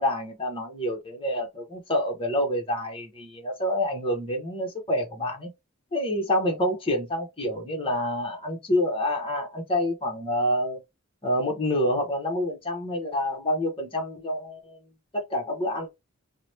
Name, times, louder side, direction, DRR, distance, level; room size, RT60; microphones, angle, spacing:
voice 1, 0.0-5.5 5.9-10.8 11.2-14.8 15.1-15.9, left 1 dB, 25° left, 0.9 m, -27 dB
2.9 x 2.1 x 3.0 m
head